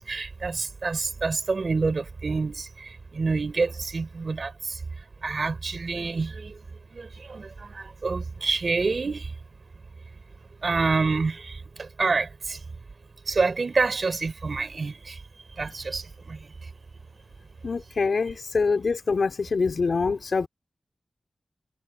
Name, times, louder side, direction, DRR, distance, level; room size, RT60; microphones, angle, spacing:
voice 1, 0.1-4.8 5.2-6.6 6.9-9.3 10.6-12.6 13.3-15.2 15.6-16.5, right 4 dB, 60° right, 3.9 m, -28 dB
voice 2, 17.6-20.5, left 4 dB, 70° left, 3.8 m, -25 dB
wide cardioid pair, 95°, 0 cm